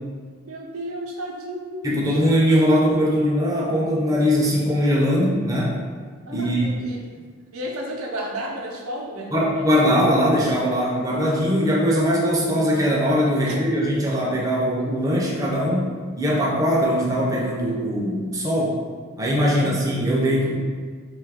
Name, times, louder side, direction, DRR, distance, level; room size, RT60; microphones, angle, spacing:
voice 1, 0.4-2.1 6.3-7.0 7.5-9.5 13.4-13.6 19.4-19.7 20.2-20.4, equal, 85° right, 0 dB, 0.6 m, -33 dB
voice 2, 1.8-5.8 6.3-6.7 9.3-15.9 16.2-18.8 19.2-20.6, equal, 15° right, -3 dB, 0.4 m, -21 dB
3.1 x 2.3 x 3.4 m, 1.5 s
head